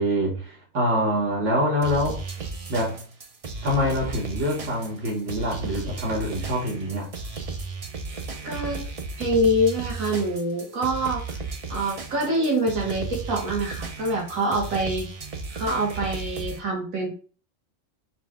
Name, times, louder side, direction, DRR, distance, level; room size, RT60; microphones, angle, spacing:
voice 1, 0.0-2.2 2.7-3.0 3.6-7.1, equal, 60° right, 1.5 m, -25 dB
sound 1, 1.8-16.6, right 4 dB, 45° right, 0.5 m, -35 dB
voice 2, 8.4-11.3 11.7-15.1 15.5-17.1, right 1 dB, 85° right, 1.6 m, -25 dB
5.6 x 2.3 x 3.5 m
omnidirectional pair, 1.4 m